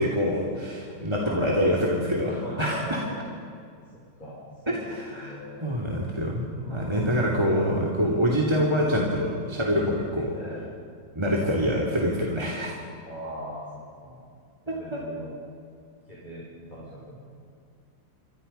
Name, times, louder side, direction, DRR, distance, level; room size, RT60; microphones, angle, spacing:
voice 1, 0.0-3.0 4.7-5.4 5.6-10.3 11.1-12.7 14.7-15.0, equal, 15° right, -2 dB, 2.8 m, -25 dB
voice 2, 1.2-2.1 2.4-3.4 4.2-5.7 6.5-7.8 8.5-9.1 10.3-10.7 11.3-11.7 13.0-14.3 14.7-15.4 16.1-17.2, equal, 20° left, -6 dB, 5.7 m, -41 dB
29.0 x 24.5 x 5.7 m, 2.3 s
omnidirectional pair, 2.1 m